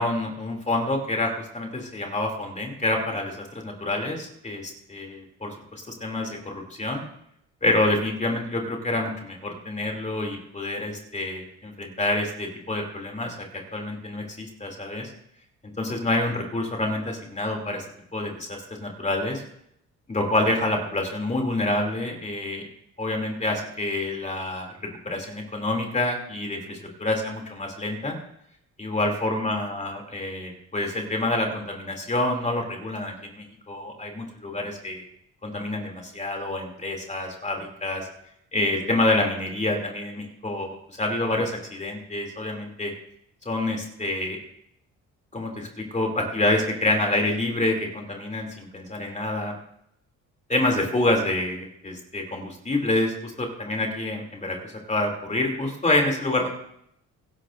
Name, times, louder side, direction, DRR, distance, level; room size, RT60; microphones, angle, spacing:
voice 1, 0.0-7.0 7.6-13.5 13.7-15.1 15.8-17.8 18.1-19.4 20.1-22.6 23.0-28.2 28.8-35.0 35.4-38.1 38.5-42.9 43.4-44.4 45.3-49.5 50.5-56.5, left 2 dB, 25° left, 1 dB, 2.8 m, -27 dB
23.5 x 11.5 x 2.6 m, 0.76 s
cardioid pair, 90°, 30 cm